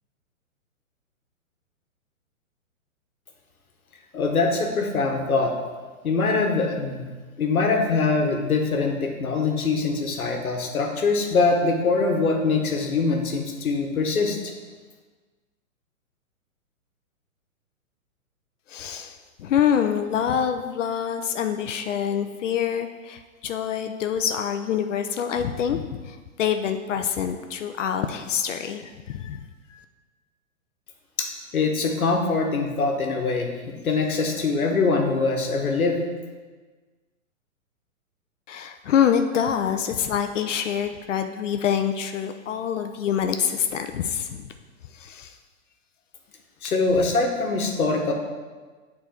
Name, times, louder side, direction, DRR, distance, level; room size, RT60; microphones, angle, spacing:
voice 1, 4.1-5.5 6.0-7.1 7.4-14.5 31.2-31.3 31.5-33.5 33.8-36.0 46.6-48.1, left 3 dB, 90° left, 3 dB, 1.3 m, -23 dB
voice 2, 18.7-19.1 19.4-29.4 38.5-44.5 45.0-45.3, left 8 dB, 60° left, 7 dB, 0.6 m, -26 dB
8.2 x 4.2 x 4.4 m, 1.4 s
hypercardioid pair, 135°, 42 cm